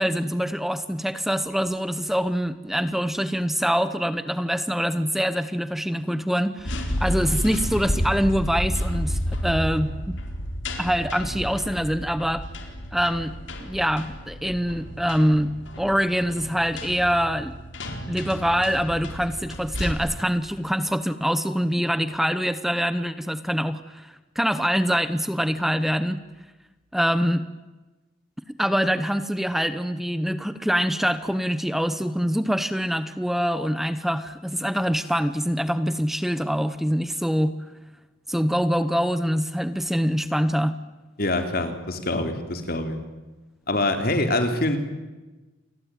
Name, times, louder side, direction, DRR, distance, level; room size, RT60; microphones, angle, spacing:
voice 1, 0.0-10.2 10.8-12.4 12.9-13.3 13.6-17.5 18.1-26.2 26.9-27.4 28.6-37.5 38.3-40.8, equal, ahead, 12 dB, 0.9 m, -24 dB
sound 1, 6.6-19.9, equal, 70° left, 4.1 m, -31 dB
voice 2, 41.2-43.0 43.7-44.8, left 2 dB, 50° left, 7 dB, 3.6 m, -25 dB
29.0 x 21.5 x 9.3 m, 1.2 s
head